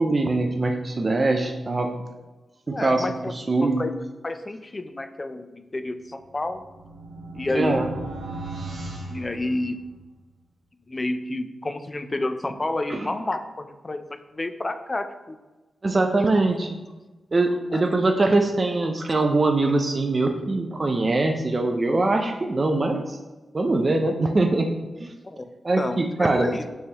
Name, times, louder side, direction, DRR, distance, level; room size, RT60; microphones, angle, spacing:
voice 1, 0.0-2.0 2.7-3.0 3.3-3.8 7.5-7.9 12.9-13.1 15.8-16.7 17.3-23.2 23.5-24.7 25.0-25.1 25.6-26.5, right 2 dB, 35° right, 4 dB, 0.4 m, -22 dB
voice 2, 2.7-3.3 3.6-3.9 4.2-6.7 7.3-7.8 9.1-9.8 10.9-15.4 16.2-16.3 17.7-17.8 25.2-25.5 25.8-26.6, left 2 dB, 30° left, 9 dB, 0.4 m, -30 dB
sound 1, 6.2-10.1, right 2 dB, 60° right, 1.1 m, -37 dB
5.4 x 3.2 x 2.9 m, 1.1 s
cardioid pair, 70°, 0 cm